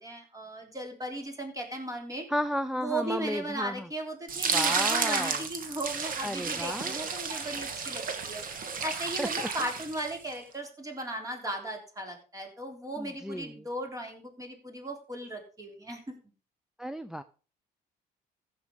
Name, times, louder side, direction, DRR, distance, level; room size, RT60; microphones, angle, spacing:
voice 1, 0.0-2.3 2.8-8.4 8.8-16.1, right 1 dB, 20° right, 3 dB, 3.6 m, -37 dB
voice 2, 2.3-3.9 4.5-5.4 6.2-7.0 9.2-9.7 13.0-13.7 16.8-17.2, equal, 5° right, 10 dB, 0.5 m, -33 dB
sound 1, 4.3-10.3, right 5 dB, 55° right, 2.0 m, -32 dB
15.0 x 6.2 x 5.2 m, 0.38 s
cardioid pair, 110°, 17 cm